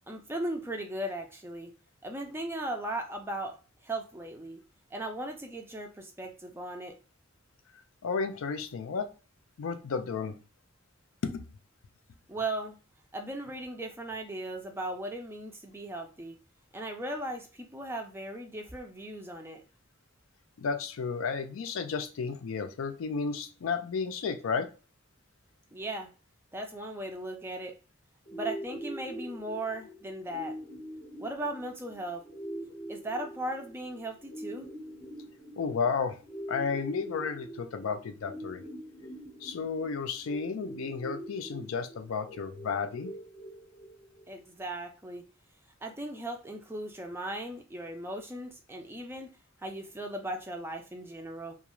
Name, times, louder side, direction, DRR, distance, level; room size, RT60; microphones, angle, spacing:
voice 1, 0.1-1.7 2.0-3.6 3.8-4.6 4.9-7.0 12.3-12.8 13.1-16.4 16.7-19.6 25.7-26.1 26.5-27.8 28.3-30.5 31.2-32.2 32.9-34.7 44.3-45.2 45.8-49.3 49.6-51.6, right 1 dB, 10° right, 4 dB, 0.3 m, -37 dB
voice 2, 8.0-9.1 9.6-10.3 11.2-11.4 20.6-24.7 35.6-36.2 36.5-38.6 39.4-43.1, left 5 dB, 90° left, 8 dB, 0.4 m, -32 dB
sound 1, 28.3-44.2, right 1 dB, 40° left, 0.6 m, -44 dB
2.4 x 2.2 x 2.9 m, 0.33 s
head